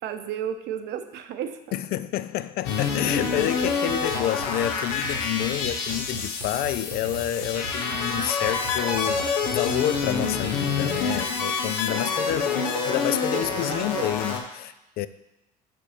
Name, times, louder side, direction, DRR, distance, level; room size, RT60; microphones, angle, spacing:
voice 1, 0.0-1.6 12.3-14.2, right 9 dB, 55° right, 0.6 m, -34 dB
voice 2, 1.7-15.1, left 12 dB, 50° left, 0.4 m, -29 dB
sound 1, 2.6-14.4, left 5 dB, 70° left, 0.8 m, -27 dB
sound 2, 3.1-11.1, right 5 dB, 85° right, 0.9 m, -39 dB
6.0 x 4.1 x 4.8 m
hypercardioid pair, 65°, 21 cm